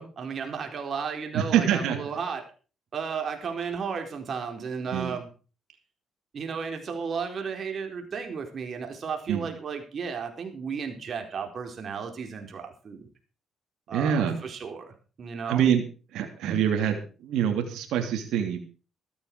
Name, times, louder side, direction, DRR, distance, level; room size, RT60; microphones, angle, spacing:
voice 1, 0.0-2.4 2.9-5.3 6.3-13.0 13.9-15.7, right 6 dB, 50° right, 4 dB, 4.4 m, -34 dB
voice 2, 1.3-2.0 4.9-5.2 9.3-9.5 13.9-14.4 15.5-15.8 16.1-18.6, right 9 dB, 80° right, 4 dB, 3.0 m, -25 dB
14.0 x 13.5 x 4.7 m, 0.37 s
cardioid pair, 85°, 0 cm